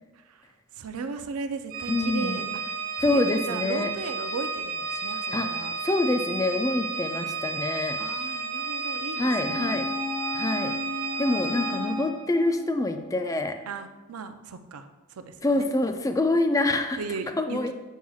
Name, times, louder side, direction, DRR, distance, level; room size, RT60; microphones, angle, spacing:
voice 1, 0.7-5.8 8.0-9.9 11.4-12.0 13.7-15.7 17.0-17.7, right 4 dB, 85° right, 9 dB, 0.5 m, -37 dB
Organ, 1.7-12.1, right 4 dB, 45° right, 1.1 m, -32 dB
voice 2, 1.9-2.4 3.0-3.9 5.3-5.5 5.8-8.0 9.2-9.9 10.3-10.7 11.2-13.6 15.4-17.0 17.4-17.7, left 2 dB, 15° left, 7 dB, 0.3 m, -26 dB
sound 1, 9.3-13.0 13.4-13.5, left 3 dB, 65° left, 1.1 m, -34 dB
7.4 x 5.4 x 2.3 m, 1.2 s
head